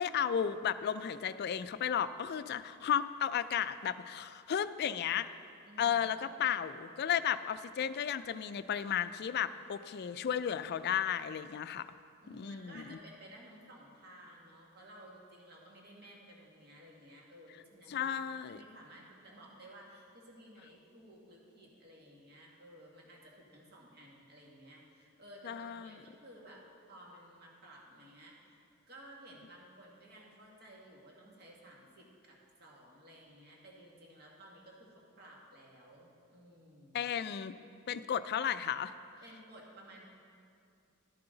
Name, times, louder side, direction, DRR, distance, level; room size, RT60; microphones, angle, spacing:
voice 1, 0.0-5.3 5.8-11.9 12.3-13.0 17.9-18.6 25.4-26.0 36.9-37.6 37.9-38.9, left 8 dB, 50° left, 13 dB, 0.3 m, -34 dB
voice 2, 5.6-6.3 12.2-28.6 28.9-37.1 39.2-40.0, right 1 dB, 50° right, -2 dB, 2.0 m, -55 dB
11.5 x 11.0 x 3.9 m, 2.4 s
head